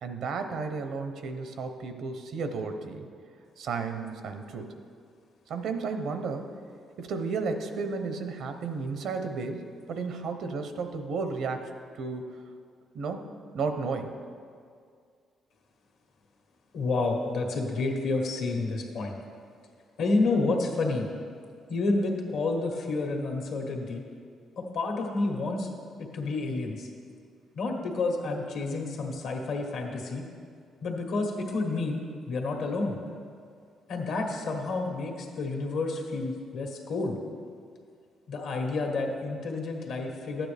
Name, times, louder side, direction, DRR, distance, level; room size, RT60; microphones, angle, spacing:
voice 1, 0.0-3.1 3.6-4.7 5.5-6.5 7.0-11.7 12.0-12.3 12.9-14.1, right 4 dB, 75° right, 7 dB, 0.8 m, -33 dB
voice 2, 16.7-19.2 20.0-21.1 21.7-24.0 24.6-25.7 26.1-26.9 27.5-30.2 30.8-33.0 33.9-37.2 38.3-40.5, left 3 dB, 80° left, 2 dB, 1.5 m, -29 dB
12.0 x 8.8 x 3.4 m, 2.2 s
cardioid pair, 90°, 0 cm